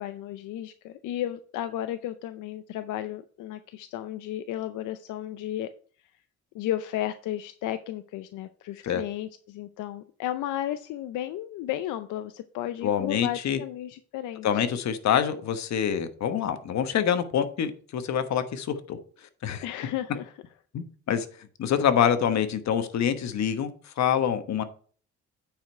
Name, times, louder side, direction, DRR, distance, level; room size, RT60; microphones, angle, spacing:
voice 1, 0.0-5.7 6.5-14.6 19.6-20.3, left 12 dB, 85° left, 10 dB, 0.6 m, -33 dB
voice 2, 12.8-13.6 14.4-19.6 20.7-21.3 21.6-24.6, left 8 dB, 65° left, 9 dB, 1.2 m, -26 dB
9.0 x 5.1 x 4.5 m, 0.44 s
cardioid pair, 90°, 30 cm